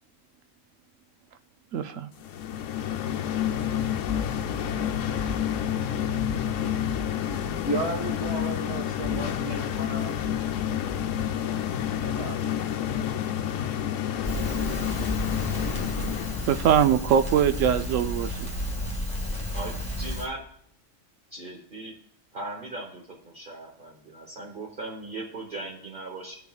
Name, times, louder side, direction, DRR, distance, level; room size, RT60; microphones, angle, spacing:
voice 1, 1.7-2.1 16.5-18.5, right 9 dB, 75° right, 1.0 m, -22 dB
sound 1, 2.2-16.7, left 10 dB, 75° left, 1.0 m, -29 dB
sound 2, 4.1-11.6, left 1 dB, 15° right, 0.7 m, -41 dB
voice 2, 7.7-10.1 12.0-12.5, right 2 dB, 60° right, 1.9 m, -33 dB
Crackle, 14.2-20.3, left 1 dB, 5° left, 1.6 m, -32 dB
voice 3, 19.3-20.4 21.3-21.9 22.3-26.3, right 2 dB, 40° right, 1.2 m, -38 dB
16.0 x 6.7 x 2.4 m
omnidirectional pair, 1.4 m